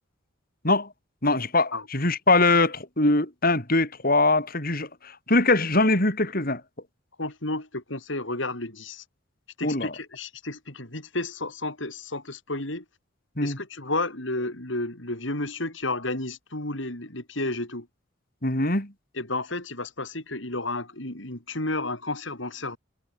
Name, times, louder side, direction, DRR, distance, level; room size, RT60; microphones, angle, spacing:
voice 1, 1.2-4.9 5.3-6.6 9.6-9.9 13.4-13.6 18.4-18.9, left 2 dB, 45° left, 7.1 m, -22 dB
voice 2, 7.2-9.0 9.6-12.8 13.4-17.9 19.1-22.8, left 2 dB, 70° left, 6.0 m, -32 dB
head